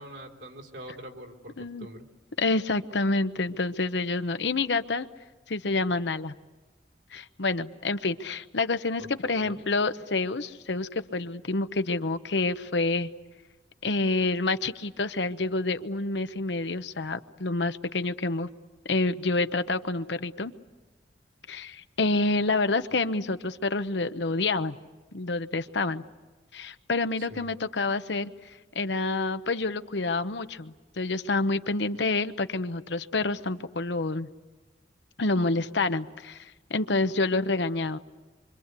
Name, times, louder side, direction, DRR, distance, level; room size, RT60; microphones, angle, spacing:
voice 1, 0.0-2.0 9.0-9.6 27.2-27.5, right 1 dB, 70° right, 2 dB, 3.6 m, -44 dB
voice 2, 2.4-5.1 5.5-6.3 7.1-13.1 13.8-18.5 18.9-20.5 21.5-24.8 25.1-26.0 26.5-28.3 28.7-34.3 35.2-38.0, left 3 dB, 70° left, 11 dB, 0.9 m, -28 dB
26.0 x 25.0 x 8.3 m, 1.2 s
head